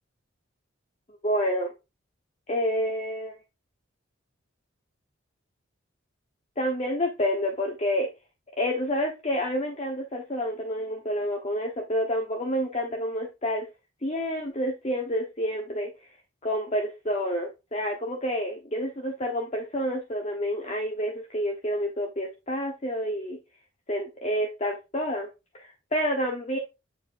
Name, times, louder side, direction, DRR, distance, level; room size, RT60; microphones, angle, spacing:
voice 1, 1.2-1.7 2.5-3.4 6.6-8.1 8.6-13.7 14.0-15.9 16.4-23.4 23.9-25.3 25.5-26.6, equal, 30° left, 1 dB, 1.0 m, -29 dB
8.9 x 4.6 x 2.5 m, 0.25 s
head